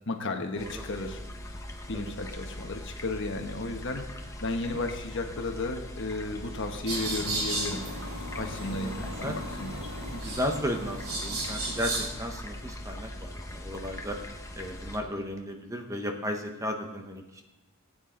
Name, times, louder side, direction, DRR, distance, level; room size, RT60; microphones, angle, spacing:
voice 1, 0.1-1.2 1.9-4.1 4.4-7.8 8.4-10.2, left 2 dB, 55° left, 4 dB, 1.2 m, -34 dB
sound 1, 0.6-15.0, left 1 dB, 15° left, 1.0 m, -41 dB
sound 2, 6.9-12.1, right 1 dB, 65° right, 3.3 m, -34 dB
voice 2, 8.4-9.0 9.2-9.4 10.1-17.4, equal, 15° right, 4 dB, 0.9 m, -35 dB
20.0 x 8.9 x 3.8 m, 1.0 s
head